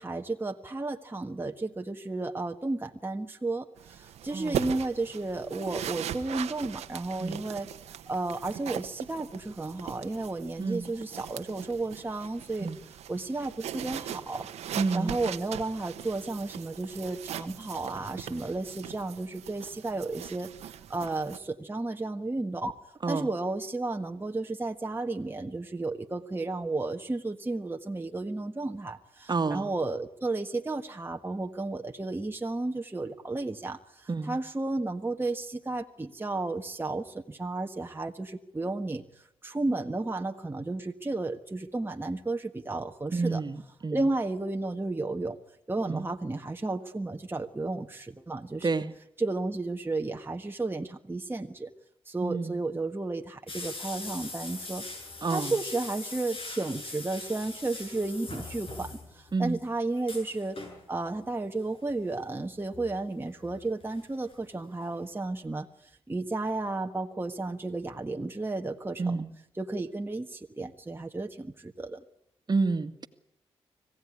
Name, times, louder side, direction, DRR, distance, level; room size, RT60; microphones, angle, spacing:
voice 1, 0.0-12.7 13.1-20.5 20.9-22.7 23.1-43.4 43.9-45.4 45.7-48.7 49.2-51.7 52.0-54.8 55.3-60.6 60.9-69.2 69.5-72.0, right 2 dB, 20° right, 3 dB, 1.5 m, -33 dB
sound 1, 3.8-21.4, right 10 dB, 85° right, 1.2 m, -40 dB
voice 2, 4.3-4.6 7.2-7.4 10.6-10.9 12.6-12.8 14.8-15.2 23.0-23.3 29.3-29.7 34.1-34.4 43.1-44.0 45.9-46.1 48.6-48.9 52.2-52.6 55.2-55.6 59.3-59.6 69.0-69.3 72.5-73.1, right 4 dB, 40° right, 9 dB, 1.9 m, -29 dB
sound 2, 53.5-59.3 59.6-59.7 60.0-60.8 61.9-62.2 62.7-64.0 64.3-64.4 64.8-64.9, left 3 dB, 55° left, 6.9 m, -41 dB
26.0 x 16.5 x 9.8 m, 0.79 s
cardioid pair, 55°, 11 cm